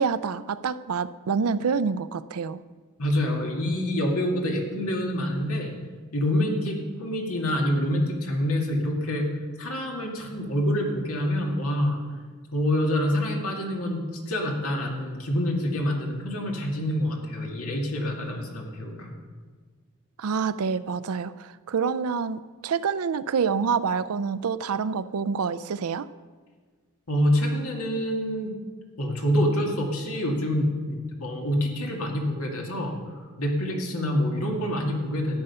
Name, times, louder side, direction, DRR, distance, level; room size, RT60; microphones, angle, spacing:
voice 1, 0.0-2.6 20.2-26.1, right 5 dB, 75° right, 15 dB, 0.5 m, -27 dB
voice 2, 3.0-5.7 6.1-9.3 9.6-12.0 12.5-19.1 27.1-28.5 29.0-35.4, left 1 dB, 75° left, 1 dB, 2.2 m, -26 dB
13.5 x 8.8 x 5.6 m, 1.5 s
head